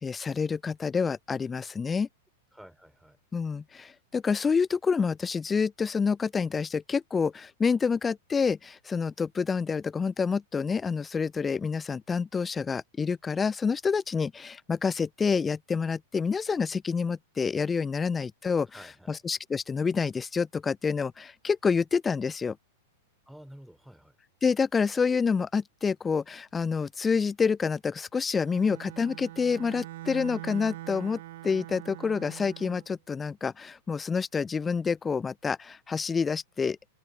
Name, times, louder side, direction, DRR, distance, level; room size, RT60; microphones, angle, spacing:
voice 1, 0.0-2.1 3.3-18.8 19.1-22.6 24.4-36.8, left 5 dB, 15° left, 0.5 m, -28 dB
voice 2, 2.5-3.2 18.7-19.2 23.3-24.2, equal, ahead, 3.2 m, -50 dB
Bowed string instrument, 28.4-32.9, right 16 dB, 55° right, 0.5 m, -43 dB
open air
figure-of-eight pair, 95°, 0 cm